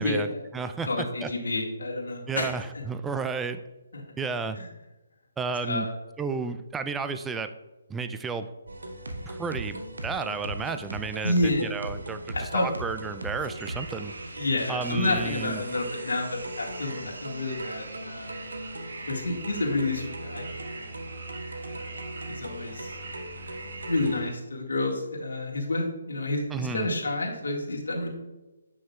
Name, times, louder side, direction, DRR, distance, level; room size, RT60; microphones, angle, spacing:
voice 1, 0.0-0.5 0.8-2.5 3.9-4.0 4.6-4.7 5.6-5.9 11.2-11.7 12.3-12.7 14.3-18.4 19.0-20.9 21.7-21.9 22.3-23.0 23.9-28.1, left 2 dB, 70° left, -1 dB, 1.8 m, -29 dB
voice 2, 0.5-1.3 2.3-3.6 4.2-4.6 5.4-5.9 6.2-7.5 7.9-8.5 9.3-14.1 14.7-15.6 26.5-26.9, right 5 dB, 10° right, 9 dB, 0.3 m, -32 dB
sound 1, 8.7-24.2, right 1 dB, 85° right, 1.0 m, -39 dB
sound 2, 13.5-24.3, right 3 dB, 60° right, 1.4 m, -43 dB
7.3 x 6.3 x 2.3 m, 1.1 s
figure-of-eight pair, 145°, 0 cm